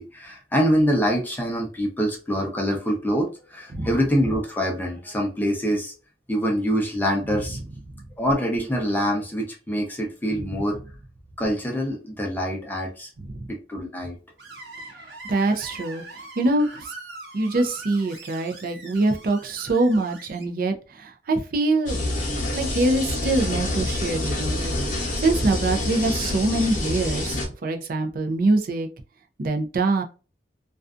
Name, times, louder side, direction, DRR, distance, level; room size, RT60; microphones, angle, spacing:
voice 1, 0.0-5.9 6.3-7.6 8.2-10.8 11.4-13.1 13.5-14.2, equal, 10° left, 0 dB, 0.6 m, -25 dB
Screech, 14.4-20.5, right 2 dB, 85° right, 1.0 m, -42 dB
voice 2, 15.3-16.0 16.4-16.9 17.3-22.0 22.6-28.9 29.4-30.0, right 2 dB, 55° right, 5 dB, 0.4 m, -24 dB
sound 1, 21.9-27.5, left 1 dB, 50° left, 0.8 m, -27 dB
2.5 x 2.3 x 2.4 m, 0.35 s
head